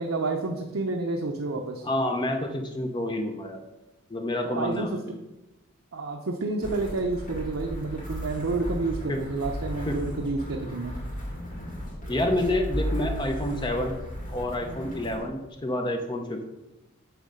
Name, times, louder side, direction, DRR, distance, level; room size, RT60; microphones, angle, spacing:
voice 1, 0.0-1.9 4.4-5.0 5.9-10.9, right 3 dB, 70° right, 1 dB, 0.6 m, -29 dB
voice 2, 1.8-3.6 4.1-4.9 9.1-9.2 9.9-10.0 12.1-14.0 14.3-16.5, left 1 dB, 20° left, 4 dB, 0.6 m, -28 dB
sound 1, 6.6-15.3, equal, 35° left, 2.0 m, -35 dB
9.2 x 3.2 x 6.4 m, 1.0 s
head